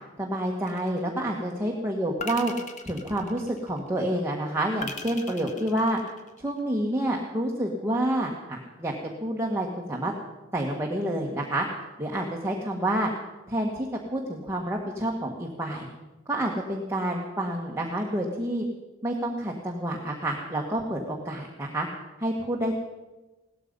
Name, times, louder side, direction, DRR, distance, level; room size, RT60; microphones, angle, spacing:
voice 1, 0.2-2.5 2.8-6.0 6.4-10.1 10.5-11.7 12.0-13.1 13.5-15.9 16.3-18.6 19.0-21.9 22.2-22.7, right 1 dB, 15° right, -1 dB, 1.4 m, -28 dB
sound 1, 0.7-1.3 2.2-3.9 4.8-6.6, left 4 dB, 35° left, 1.2 m, -40 dB
17.0 x 13.0 x 5.3 m, 1.1 s
head